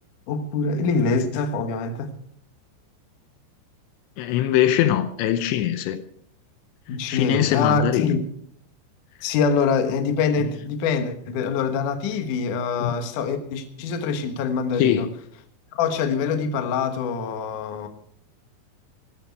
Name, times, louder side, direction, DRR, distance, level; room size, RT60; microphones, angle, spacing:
voice 1, 0.3-2.1 6.9-8.2 9.2-15.1 15.7-17.9, left 5 dB, 65° left, 2.2 m, -24 dB
voice 2, 4.2-6.0 7.1-8.2 12.8-12.9 14.8-15.1, left 11 dB, 80° left, 2.9 m, -22 dB
15.5 x 14.0 x 4.6 m
omnidirectional pair, 5.4 m